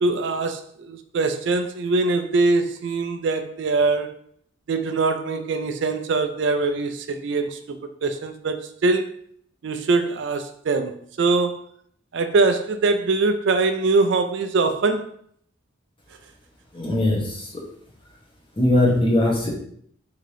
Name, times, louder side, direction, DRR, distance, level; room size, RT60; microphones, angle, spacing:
voice 1, 0.0-4.1 4.7-9.1 9.6-11.6 12.1-15.1, right 3 dB, 60° right, 0.4 m, -22 dB
voice 2, 16.7-17.5 18.6-19.5, left 1 dB, 25° left, 1.1 m, -20 dB
3.7 x 2.8 x 4.8 m
head